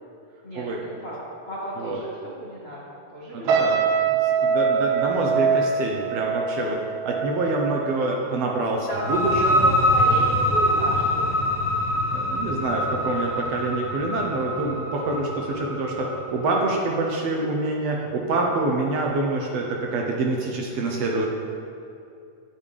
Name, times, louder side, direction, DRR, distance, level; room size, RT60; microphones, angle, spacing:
voice 1, 1.5-2.1 2.4-2.8 3.1-3.6 8.9-9.0 9.4-11.4, equal, 75° left, -7 dB, 0.5 m, -33 dB
voice 2, 3.3-6.8 7.0-9.6 12.1-21.3, right 2 dB, 70° right, -1 dB, 1.6 m, -26 dB
sound 1, 3.5-8.8 9.1-9.4, right 6 dB, 85° right, 2.3 m, -24 dB
sound 2, 8.9-16.4, equal, 50° right, 2.3 m, -24 dB
9.0 x 8.7 x 3.3 m, 2.6 s
omnidirectional pair, 3.4 m